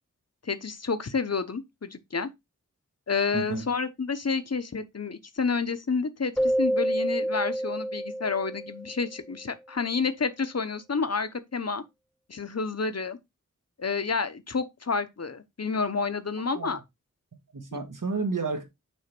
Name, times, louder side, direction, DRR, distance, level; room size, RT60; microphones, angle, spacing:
voice 1, 0.4-2.3 3.1-11.8 12.3-13.2 13.8-16.8, left 4 dB, 55° left, 1.0 m, -29 dB
voice 2, 3.3-3.7 16.5-16.7 17.5-18.6, right 3 dB, 90° right, 1.9 m, -31 dB
Keyboard (musical), 6.4-9.1, right 1 dB, 5° left, 0.6 m, -28 dB
6.4 x 3.4 x 6.0 m
wide cardioid pair, 55°, 31 cm